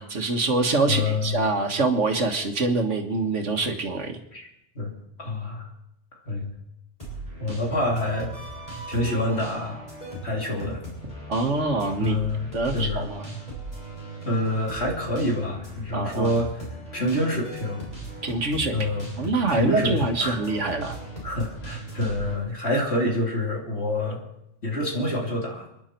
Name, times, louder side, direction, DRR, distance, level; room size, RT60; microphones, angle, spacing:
voice 1, 0.0-4.2 11.3-12.2 12.5-13.3 15.9-16.4 18.2-18.8 19.2-21.0, right 3 dB, 80° right, 5 dB, 2.0 m, -25 dB
voice 2, 0.9-1.5 4.3-4.5 4.7-4.9 5.2-5.7 6.2-6.5 7.4-8.3 8.9-9.8 10.2-10.8 12.0-13.1 14.2-16.6 16.9-17.8 18.7-19.1 19.5-20.4 21.2-24.2 24.6-25.7, left 1 dB, 60° left, 0 dB, 3.4 m, -27 dB
sound 1, 7.0-22.4, right 1 dB, 30° left, 6.8 m, -38 dB
29.5 x 10.5 x 4.5 m, 0.82 s
omnidirectional pair, 1.2 m